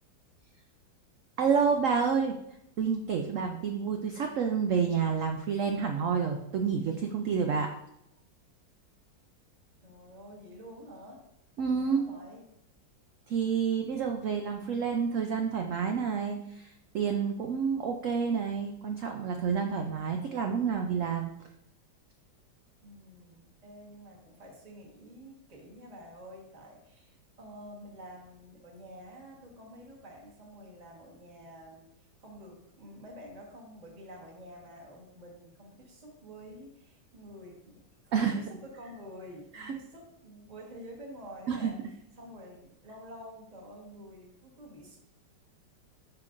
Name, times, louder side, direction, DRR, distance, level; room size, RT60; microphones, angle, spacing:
voice 1, 1.4-2.3 2.8-7.7 11.6-12.1 13.3-21.3 38.1-38.4 39.5-39.7 41.5-41.7, right 6 dB, 90° right, 4 dB, 0.6 m, -29 dB
voice 2, 9.8-11.2 11.7-12.4 22.8-31.9 32.2-41.9 42.2-45.0, equal, 25° right, -3 dB, 1.4 m, -49 dB
7.5 x 5.8 x 2.5 m, 0.80 s
omnidirectional pair, 2.0 m